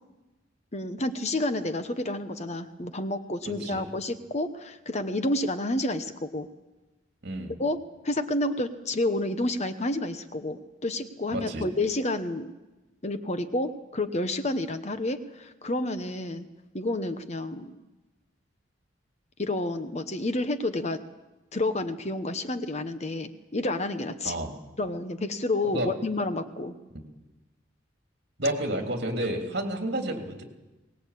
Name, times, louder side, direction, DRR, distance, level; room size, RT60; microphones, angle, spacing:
voice 1, 0.7-6.5 7.6-7.8 8.0-12.5 13.0-16.4 16.7-17.8 19.4-21.0 21.5-24.3 24.8-26.7, left 2 dB, 35° left, 9 dB, 1.1 m, -29 dB
voice 2, 3.4-3.9 7.2-7.5 11.3-11.7 24.2-24.5 25.7-25.9 28.4-30.4, right 1 dB, 60° right, 3 dB, 3.3 m, -30 dB
23.0 x 19.0 x 8.5 m, 1.1 s
head